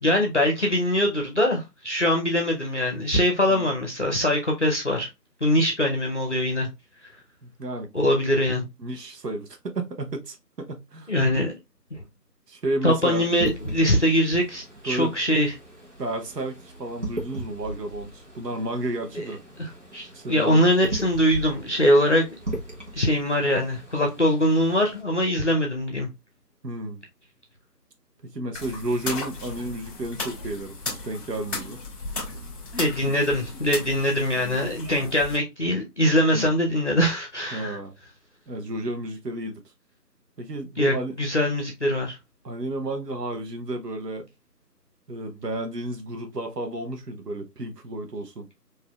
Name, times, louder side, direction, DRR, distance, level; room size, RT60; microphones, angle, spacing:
voice 1, 0.0-5.1 5.4-6.7 7.9-8.7 11.1-11.5 12.8-15.5 19.2-19.3 19.6-22.3 22.9-26.1 32.8-37.8 40.8-42.2, left 1 dB, 45° left, 0.7 m, -22 dB
voice 2, 7.4-7.9 8.8-11.1 12.5-13.3 14.8-15.1 16.0-19.4 20.1-20.7 26.6-27.0 28.2-31.8 36.3-36.5 37.5-37.9 38.5-39.6 40.4-41.2 42.4-44.3 45.1-48.5, right 2 dB, 75° right, 0.9 m, -32 dB
sound 1, 13.2-25.0, right 1 dB, 45° right, 1.1 m, -38 dB
sound 2, 28.5-35.4, left 3 dB, 10° right, 2.0 m, -35 dB
4.0 x 2.7 x 2.3 m
figure-of-eight pair, 175°, 49 cm